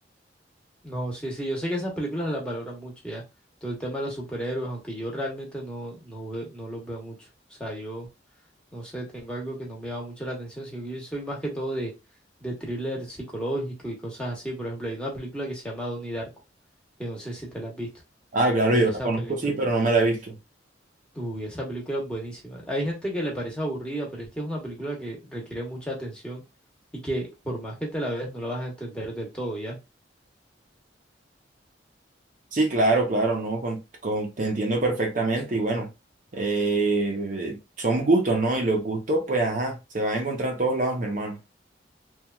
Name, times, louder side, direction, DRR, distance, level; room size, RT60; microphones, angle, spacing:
voice 1, 0.8-3.2 3.6-8.1 8.7-11.9 12.4-16.3 17.0-17.9 18.7-19.5 21.1-26.4 26.9-29.8, right 1 dB, 5° left, 0.9 m, -32 dB
voice 2, 18.3-20.4 32.5-35.9 36.3-41.4, right 2 dB, 45° right, 0.5 m, -24 dB
2.9 x 2.2 x 2.2 m
head